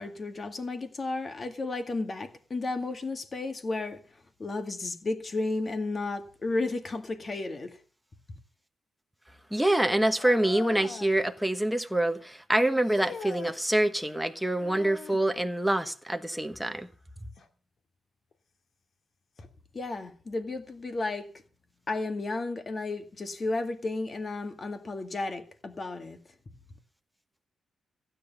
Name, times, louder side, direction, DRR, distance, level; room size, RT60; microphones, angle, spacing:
voice 1, 0.0-4.0 4.4-7.8 19.7-21.3 21.9-26.2, left 3 dB, 30° left, 2.1 m, -33 dB
voice 2, 9.5-16.9, right 1 dB, ahead, 1.3 m, -26 dB
sound 1, 10.2-11.2 12.8-13.6 14.6-15.3 17.4-17.5 18.3-18.4 19.4-19.5, left 4 dB, 50° left, 2.1 m, -41 dB
15.5 x 9.9 x 6.8 m
wide cardioid pair, 155°, 0 cm